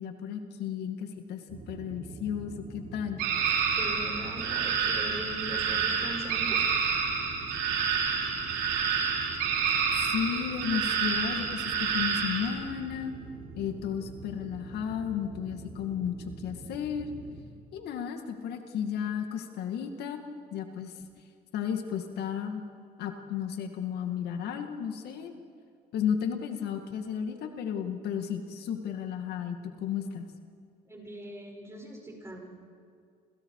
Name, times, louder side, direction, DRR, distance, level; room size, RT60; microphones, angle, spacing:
voice 1, 0.0-3.2 10.0-13.2 13.6-17.1 17.7-20.2 20.5-21.1 21.5-22.6 23.0-25.3 25.9-30.3, left 8 dB, 75° left, 5 dB, 2.2 m, -33 dB
sound 1, 1.5-17.4, right 3 dB, 55° right, 4.0 m, -45 dB
sound 2, 3.2-12.5, right 6 dB, 90° right, 5.1 m, -28 dB
voice 2, 3.7-6.6 30.8-32.4, right 1 dB, 15° right, 0 dB, 6.7 m, -41 dB
29.5 x 28.0 x 4.9 m, 2.2 s
cardioid pair, 110°, 17 cm